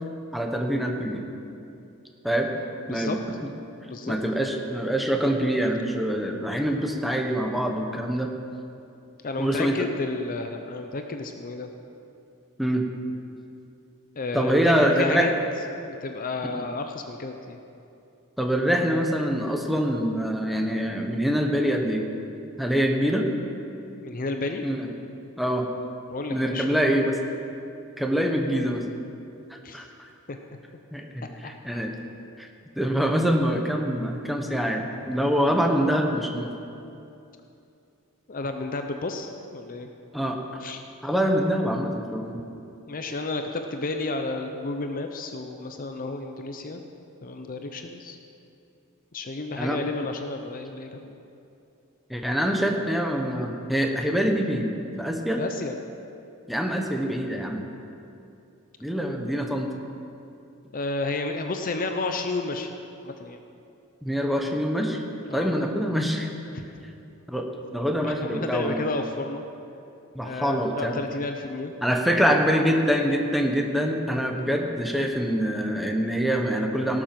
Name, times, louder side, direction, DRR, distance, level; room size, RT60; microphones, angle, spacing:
voice 1, 0.3-1.2 2.2-2.5 2.9-3.5 4.1-8.3 9.4-9.8 12.6-12.8 14.3-15.3 16.5-16.7 18.4-22.0 22.6-23.3 24.6-24.9 25.4-25.7 26.3-27.2 28.0-28.8 29.5-29.9 30.9-31.9 32.4-32.5 32.8-36.5 40.1-40.4 41.0-42.4 49.6-49.8 52.1-54.7 55.0-55.4 56.5-57.7 58.8-59.7 64.0-65.0 65.3-66.3 67.3-67.5 67.7-68.9 70.1-70.9 71.8-77.0, equal, ahead, 2 dB, 1.0 m, -25 dB
voice 2, 2.9-3.2 3.9-4.2 9.2-11.7 14.2-15.3 15.9-17.6 23.9-24.7 26.1-26.7 29.6-29.8 30.3-30.4 31.4-31.5 38.3-39.9 40.6-40.8 42.9-46.8 47.2-48.2 49.1-51.2 55.4-55.7 60.7-62.7 63.0-63.4 65.2-65.5 66.5-66.6 68.0-69.4 70.2-71.7, left 3 dB, 40° left, 5 dB, 0.6 m, -31 dB
17.5 x 7.4 x 5.9 m, 2.7 s
head